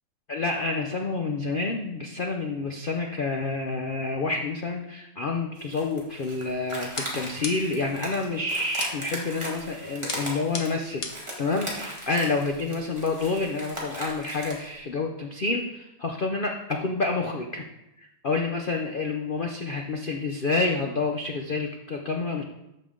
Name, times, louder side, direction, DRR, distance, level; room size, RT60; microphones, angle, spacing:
voice 1, 0.3-11.0 11.4-17.7 18.0-22.4, left 3 dB, 75° left, 3 dB, 0.4 m, -28 dB
sound 1, 5.6-14.7, equal, 15° right, 1.9 m, -38 dB
sound 2, 7.0-7.9 8.8-9.2 10.1-11.4, left 4 dB, 45° left, 1.1 m, -36 dB
13.0 x 5.7 x 3.8 m, 0.90 s
omnidirectional pair, 1.9 m